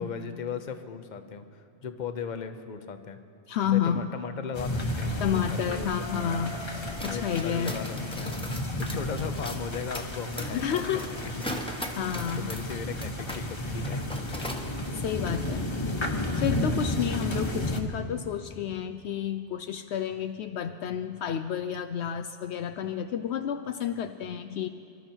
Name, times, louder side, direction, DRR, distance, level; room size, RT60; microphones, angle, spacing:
voice 1, 0.0-3.2 3.7-5.9 6.2-6.5 7.0-8.4 8.8-11.6 12.4-14.0, left 6 dB, 45° left, 9 dB, 0.9 m, -37 dB
voice 2, 3.5-4.1 5.2-6.6 7.0-7.8 10.5-11.5 12.0-12.5 14.9-15.7 16.3-24.7, left 9 dB, 75° left, 9 dB, 0.8 m, -30 dB
sound 1, 4.5-17.8, left 1 dB, 25° left, 1.1 m, -32 dB
sound 2, 6.8-13.5 13.7-14.7, equal, 5° left, 1.1 m, -39 dB
24.5 x 12.5 x 4.5 m, 2.6 s
omnidirectional pair, 1.2 m